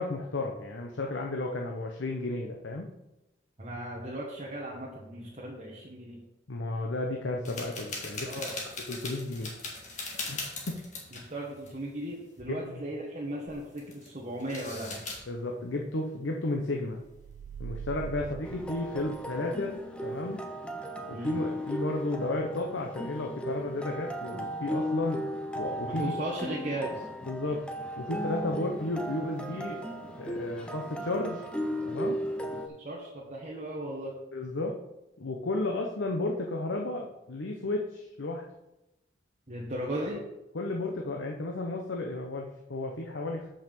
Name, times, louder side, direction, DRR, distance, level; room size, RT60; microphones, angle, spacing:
voice 1, 0.0-2.9 6.5-8.3 8.9-9.5 10.3-10.4 10.7-10.8 12.5-12.8 15.3-17.0 17.6-20.4 21.1-25.2 25.5-26.1 27.3-27.6 28.0-29.8 30.2-31.4 31.9-32.2 34.3-34.8 35.2-38.4 40.5-43.5, left 2 dB, 80° left, 1 dB, 0.8 m, -33 dB
voice 2, 3.6-6.2 8.2-8.6 11.3-15.0 18.2-18.3 21.1-21.4 25.8-27.1 32.8-34.1 39.5-40.2, right 1 dB, 35° right, -5 dB, 1.4 m, -36 dB
sound 1, 7.5-11.3 11.6-11.7 12.1-12.4 13.5-14.1 14.4-15.2, left 3 dB, 40° left, 1.7 m, -39 dB
sound 2, 17.0-19.6, right 7 dB, 80° right, 0.4 m, -42 dB
sound 3, 18.4-32.7, equal, 5° left, 0.6 m, -36 dB
5.7 x 5.5 x 6.8 m, 0.93 s
head